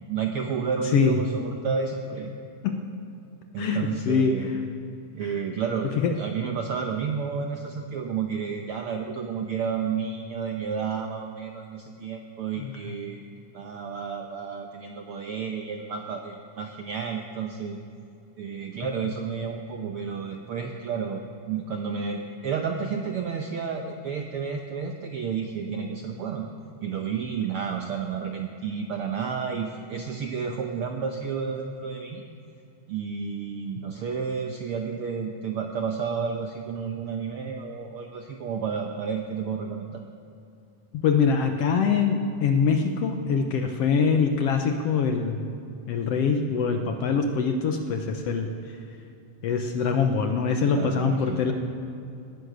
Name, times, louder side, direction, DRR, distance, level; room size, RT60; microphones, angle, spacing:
voice 1, 0.1-2.3 3.5-4.5 5.1-13.2 13.5-17.8 18.4-26.5 26.8-32.2 32.9-40.0 50.7-51.4, right 6 dB, 75° right, 3 dB, 1.3 m, -31 dB
voice 2, 3.6-4.4 5.2-5.3 6.0-6.1 12.6-12.7 41.0-45.4 45.9-48.5 49.4-51.5, left 5 dB, 70° left, 5 dB, 1.6 m, -24 dB
18.5 x 9.9 x 6.7 m, 2.6 s
omnidirectional pair, 3.5 m